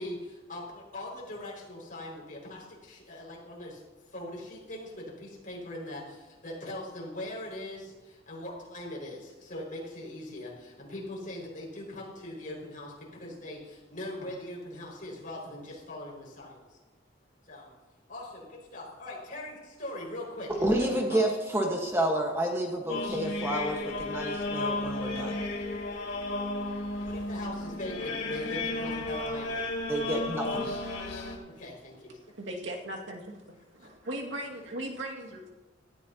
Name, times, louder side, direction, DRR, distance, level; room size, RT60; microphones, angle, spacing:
voice 1, 0.0-3.8 4.1-16.8 17.5-17.7 18.1-20.5 20.8-21.2 27.0-29.6 31.4-32.2 33.8-33.9, left 1 dB, 45° left, -3 dB, 5.6 m, -41 dB
voice 2, 20.6-25.4 29.9-30.7, right 1 dB, 15° right, 0 dB, 1.4 m, -29 dB
sound 1, 22.9-31.4, left 2 dB, 80° left, 3.4 m, -33 dB
voice 3, 32.4-35.5, right 1 dB, 85° right, -1 dB, 2.1 m, -38 dB
17.0 x 14.5 x 2.9 m, 1.2 s
head